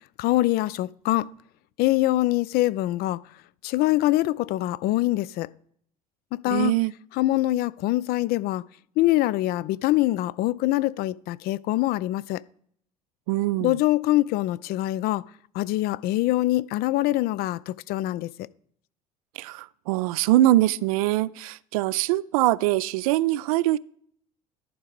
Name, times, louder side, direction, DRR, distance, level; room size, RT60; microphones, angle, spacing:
voice 1, 0.2-1.3 1.8-3.2 3.6-5.5 6.3-6.7 7.2-8.6 9.0-12.4 13.6-15.2 15.5-18.3, left 16 dB, 55° left, 0.5 m, -24 dB
voice 2, 6.5-6.9 13.3-13.8 19.4-23.8, right 15 dB, 70° right, 0.4 m, -23 dB
11.0 x 4.7 x 5.2 m
figure-of-eight pair, 60°, 19 cm